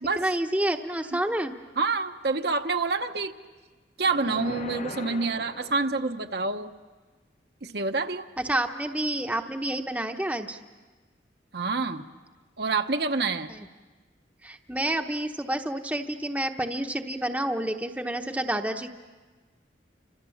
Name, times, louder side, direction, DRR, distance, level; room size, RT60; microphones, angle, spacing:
voice 1, 0.2-1.5 8.4-10.6 13.5-13.7 14.4-18.9, right 1 dB, 10° right, 5 dB, 0.9 m, -29 dB
voice 2, 1.8-3.3 4.0-6.7 7.6-8.3 11.5-12.0 12.6-13.5, right 3 dB, 60° right, 6 dB, 1.1 m, -27 dB
sound 1, 4.0-6.3, left 2 dB, 40° left, 0.8 m, -40 dB
29.5 x 25.5 x 7.2 m, 1.3 s
head